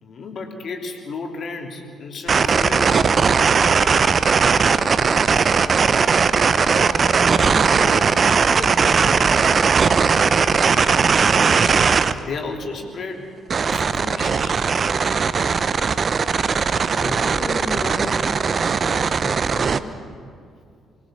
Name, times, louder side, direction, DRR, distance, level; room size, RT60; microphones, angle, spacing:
voice 1, 0.0-3.1 12.1-13.2 13.6-14.6, left 4 dB, 50° left, 3 dB, 3.2 m, -33 dB
sound 1, 2.3-12.1 13.5-19.8, right 5 dB, 40° right, 0.8 m, -18 dB
voice 2, 6.7-9.5 16.9-20.0, left 2 dB, 25° left, 0 dB, 3.7 m, -33 dB
24.5 x 20.5 x 7.0 m, 2.3 s
figure-of-eight pair, 45°, 0 cm